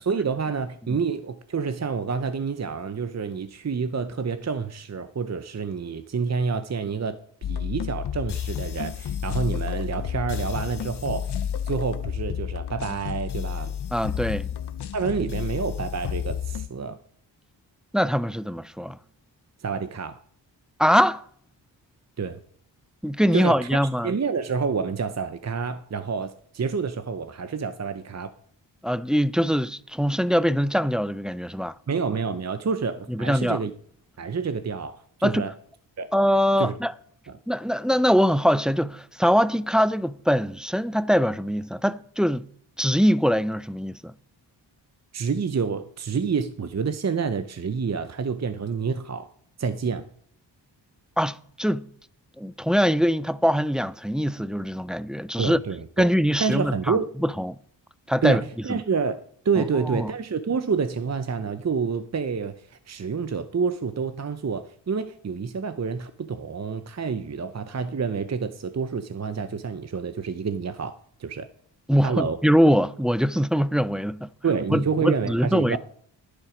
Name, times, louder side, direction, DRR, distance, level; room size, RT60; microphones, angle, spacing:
voice 1, 0.0-13.7 14.9-17.0 19.6-20.2 22.2-22.4 23.3-28.3 31.9-33.7 34.2-35.5 36.0-36.1 36.6-36.7 37.3-37.4 45.1-49.3 49.6-50.1 55.4-56.1 56.4-57.1 58.2-71.5 72.0-72.4 74.4-75.8, right 5 dB, 35° right, 0.8 m, -28 dB
sound 1, 7.4-16.7, left 9 dB, 60° left, 0.9 m, -31 dB
voice 2, 13.9-14.5 17.9-19.0 20.8-21.2 23.0-24.1 28.8-31.7 33.1-33.6 35.2-35.4 36.1-36.9 37.5-42.5 42.8-44.1 51.2-51.9 52.4-55.6 56.0-57.6 58.1-58.4 59.6-60.1 71.9-74.3 74.7-75.8, equal, ahead, 0.4 m, -23 dB
11.0 x 10.5 x 5.1 m
cardioid pair, 60°, 45 cm